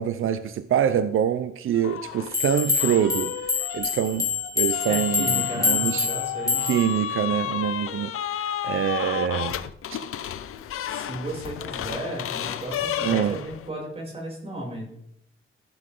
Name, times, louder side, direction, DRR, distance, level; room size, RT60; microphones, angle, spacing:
voice 1, 0.0-6.1 6.4-9.6 9.9-10.0 13.0-13.4, right 9 dB, 75° right, 0.6 m, -25 dB
sound 1, 1.7-2.4 2.8-13.7, left 10 dB, 90° left, 0.6 m, -32 dB
sound 2, 2.3-7.0, left 5 dB, 15° left, 3.1 m, -26 dB
voice 2, 4.9-6.7 10.9-14.9, right 1 dB, 30° right, 6.5 m, -34 dB
15.5 x 11.5 x 3.8 m
wide cardioid pair, 145°, 21 cm